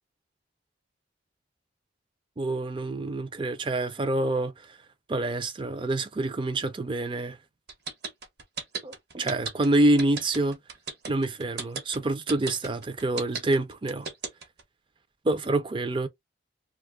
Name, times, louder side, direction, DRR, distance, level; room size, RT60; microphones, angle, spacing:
voice 1, 2.4-4.7 5.1-7.4 8.8-10.6 11.1-14.1 15.2-16.1, right 2 dB, 25° right, 0.4 m, -27 dB
sound 1, 7.7-14.6, right 4 dB, 55° right, 1.0 m, -35 dB
2.5 x 2.3 x 3.5 m
head